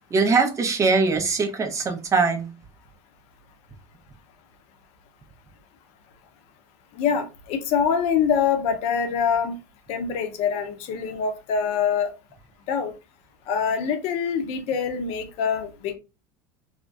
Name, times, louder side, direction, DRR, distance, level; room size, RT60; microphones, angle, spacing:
voice 1, 0.1-2.5, right 4 dB, 25° right, 0.7 m, -21 dB
voice 2, 7.0-9.6 9.9-12.1 12.7-12.9 13.5-15.9, left 7 dB, 60° left, 0.6 m, -24 dB
2.5 x 2.1 x 2.4 m
hypercardioid pair, 90°, 12 cm